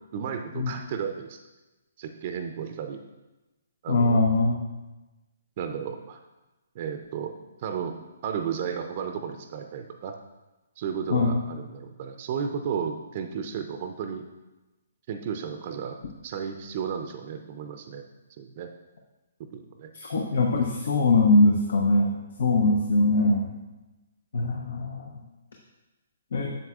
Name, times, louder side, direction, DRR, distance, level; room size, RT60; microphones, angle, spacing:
voice 1, 0.1-1.4 2.0-3.0 3.8-4.2 5.6-6.2 6.7-7.3 7.6-10.1 10.8-14.3 15.1-16.0 16.2-18.0 18.4-18.7 19.4-19.9 20.2-20.3, right 7 dB, 40° right, 6 dB, 0.5 m, -33 dB
voice 2, 3.9-4.6 11.1-11.3 19.9-22.1 22.4-23.5 24.3-25.2 26.3-26.5, left 2 dB, 60° left, 1 dB, 0.8 m, -22 dB
7.8 x 7.3 x 2.4 m, 1.1 s
figure-of-eight pair, 130°, 0 cm